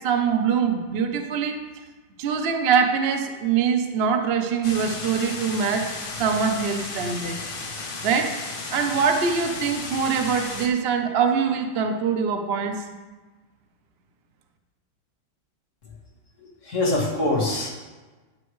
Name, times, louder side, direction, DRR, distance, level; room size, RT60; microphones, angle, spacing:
voice 1, 0.0-1.6 2.2-5.9 6.2-7.4 8.0-8.4 8.7-12.8, right 6 dB, 70° right, 5 dB, 0.5 m, -23 dB
sound 1, 4.6-10.7, left 3 dB, 80° left, 2.1 m, -34 dB
voice 2, 16.4-17.7, left 2 dB, 40° left, -4 dB, 1.9 m, -24 dB
11.5 x 8.0 x 3.2 m, 1.3 s
omnidirectional pair, 2.3 m